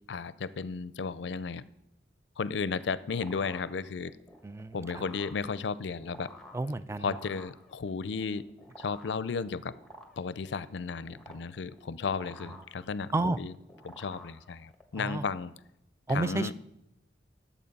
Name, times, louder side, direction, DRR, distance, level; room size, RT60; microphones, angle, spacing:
voice 1, 0.1-1.7 2.4-4.2 4.7-6.3 7.0-8.4 8.8-9.8 10.2-13.5 13.8-15.5 16.1-16.5, left 5 dB, 70° left, 17 dB, 0.5 m, -34 dB
sound 1, 2.7-14.9, equal, ahead, 1.3 m, -52 dB
voice 2, 4.4-5.0 6.5-7.1 13.1-13.4 15.0-15.2 16.1-16.5, right 2 dB, 15° right, 14 dB, 0.3 m, -31 dB
11.0 x 7.2 x 5.3 m, 0.84 s
head